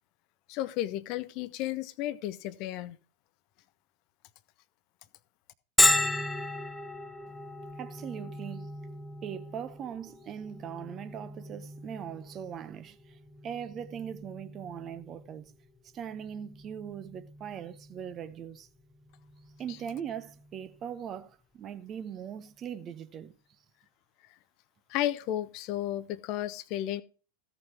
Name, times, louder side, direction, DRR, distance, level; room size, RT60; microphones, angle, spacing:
voice 1, 0.5-3.0 19.7-19.8 24.9-27.0, left 13 dB, 40° left, 0.8 m, -33 dB
Bell, 5.8-21.2, left 2 dB, 5° left, 0.6 m, -35 dB
voice 2, 7.8-8.7 9.2-15.5 15.9-18.7 19.6-23.3, right 8 dB, 30° right, 0.8 m, -40 dB
15.5 x 6.1 x 4.6 m
figure-of-eight pair, 90°, 0 cm